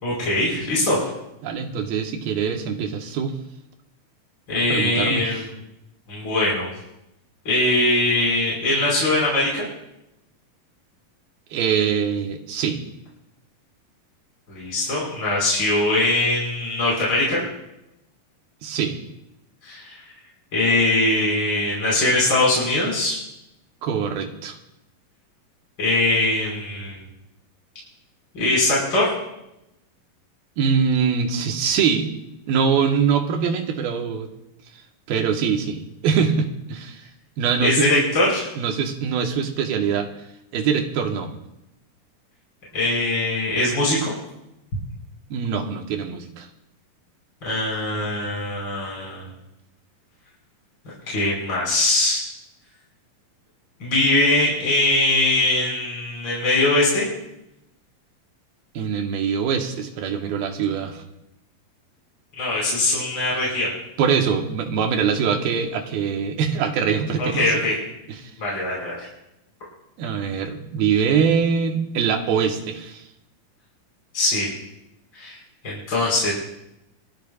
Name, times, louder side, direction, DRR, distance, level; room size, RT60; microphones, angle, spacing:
voice 1, 0.0-1.0 4.5-5.4 6.1-6.7 7.5-9.6 14.5-17.4 19.6-20.0 20.5-23.2 25.8-27.0 28.3-29.1 37.6-38.5 42.7-44.1 47.4-49.2 51.1-52.2 53.8-57.1 62.4-63.7 67.2-67.8 68.4-69.0 74.1-74.5 75.1-75.4 75.6-76.3, left 2 dB, 30° left, -6 dB, 5.7 m, -21 dB
voice 2, 1.4-3.4 4.7-5.4 11.5-12.8 18.6-19.0 23.8-24.6 30.6-32.1 32.5-34.3 35.1-37.0 37.4-37.9 38.6-40.1 40.5-41.3 45.3-46.5 58.7-61.0 64.0-67.5 68.2-68.3 70.0-73.1, right 6 dB, 90° right, 3 dB, 3.3 m, -23 dB
26.0 x 14.0 x 2.4 m, 0.85 s
omnidirectional pair, 4.1 m